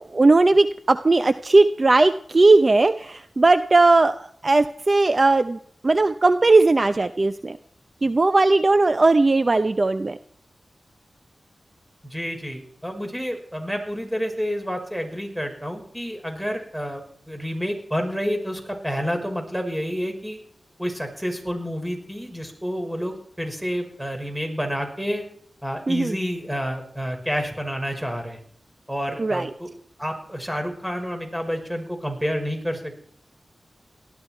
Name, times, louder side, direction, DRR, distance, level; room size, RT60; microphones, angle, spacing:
voice 1, 0.1-4.2 4.4-5.6 5.8-7.6 8.0-10.2 25.9-26.1 29.2-29.5, right 3 dB, 40° right, 10 dB, 0.8 m, -18 dB
voice 2, 12.0-20.4 20.8-25.2 25.6-28.4 28.9-29.7 30.0-33.0, equal, 5° right, 4 dB, 5.7 m, -29 dB
18.5 x 13.5 x 4.6 m, 0.62 s
cardioid pair, 60°, 0 cm